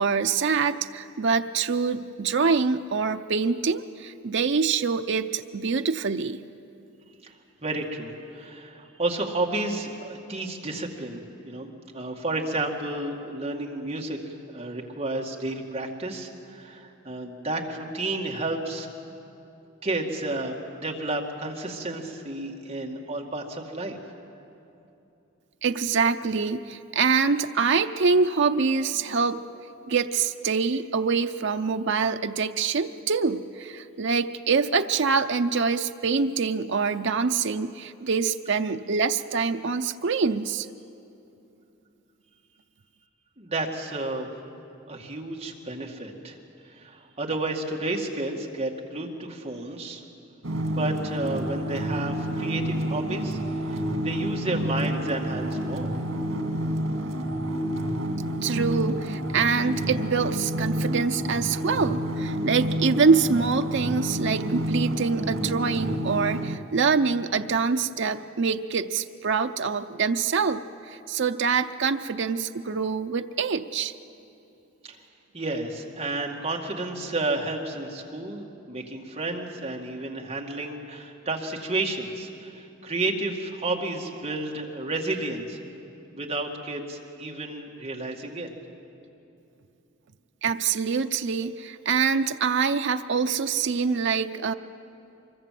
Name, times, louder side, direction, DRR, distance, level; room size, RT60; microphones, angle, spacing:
voice 1, 0.0-6.4 25.6-29.4 29.9-40.7 58.4-70.6 70.9-73.9 90.4-94.5, right 5 dB, 60° right, 7 dB, 0.6 m, -25 dB
voice 2, 7.6-11.7 11.9-14.2 14.5-18.9 19.8-20.6 20.8-24.0 43.4-44.3 44.9-46.4 46.7-50.0 50.8-56.0 74.8-75.0 75.3-85.7 86.1-88.5, right 2 dB, 30° right, 0 dB, 2.2 m, -31 dB
sound 1, 50.4-66.6, equal, 85° right, 2.2 m, -29 dB
24.5 x 22.5 x 7.7 m, 2.8 s
head